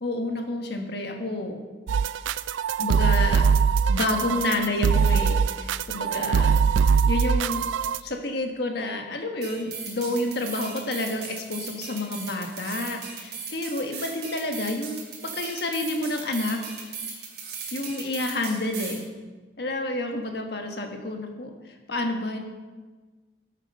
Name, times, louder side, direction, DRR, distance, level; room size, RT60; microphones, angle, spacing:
voice 1, 0.0-1.6 2.8-3.5 3.9-6.6 7.1-7.6 8.0-15.0 15.4-16.6 17.7-19.1 19.6-21.5 21.9-22.4, left 2 dB, 55° left, 3 dB, 1.5 m, -29 dB
sound 1, 1.9-8.0, right 6 dB, 80° right, 0.3 m, -22 dB
sound 2, 9.4-19.0, right 5 dB, 55° right, 2.5 m, -38 dB
13.5 x 7.9 x 5.4 m, 1.3 s
head